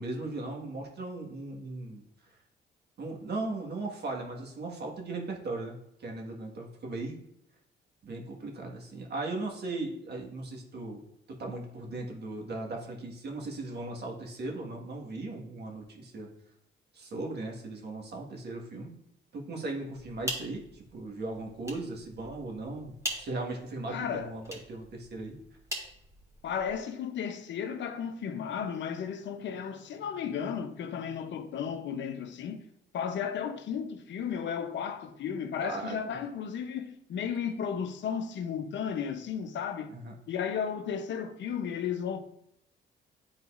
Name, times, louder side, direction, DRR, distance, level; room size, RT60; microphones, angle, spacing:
voice 1, 0.0-2.0 3.0-7.2 8.0-11.0 11.3-16.3 16.9-18.9 19.3-25.4 35.6-36.2 39.9-40.1, right 2 dB, 55° right, 1.6 m, -38 dB
sound 1, 19.9-26.8, equal, 15° right, 1.9 m, -42 dB
voice 2, 23.9-24.3 26.4-32.7 32.9-39.9 40.3-42.2, left 7 dB, 65° left, 0.7 m, -34 dB
10.0 x 4.0 x 2.5 m
cardioid pair, 90°, 20 cm